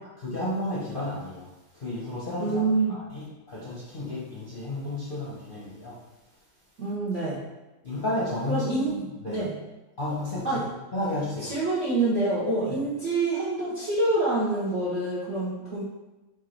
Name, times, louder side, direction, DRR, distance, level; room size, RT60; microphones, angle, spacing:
voice 1, 0.2-2.6 2.9-6.0 7.8-9.4 10.0-10.6 10.9-11.5 12.7-12.8, left 1 dB, 45° left, -8 dB, 0.7 m, -32 dB
voice 2, 2.4-3.0 6.8-7.4 8.5-9.6 10.4-10.7 11.4-15.8, right 2 dB, 55° right, -8 dB, 0.8 m, -26 dB
4.7 x 2.4 x 4.4 m, 1.1 s
omnidirectional pair, 2.3 m